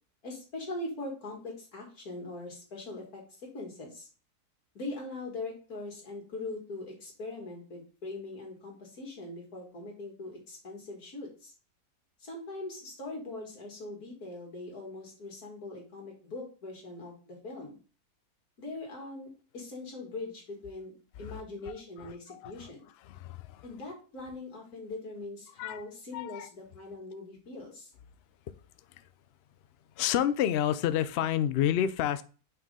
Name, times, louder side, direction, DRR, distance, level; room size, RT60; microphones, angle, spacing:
voice 1, 0.2-3.2 3.5-4.1 4.7-11.5 12.2-17.8 18.6-20.9 21.2-22.8 23.6-27.9, left 2 dB, 70° left, 0 dB, 2.6 m, -41 dB
voice 2, 21.2-23.7 25.5-25.8 26.1-26.5 28.9-29.1 30.0-32.2, left 10 dB, 90° left, 13 dB, 0.5 m, -31 dB
6.2 x 4.8 x 3.6 m, 0.38 s
omnidirectional pair, 1.7 m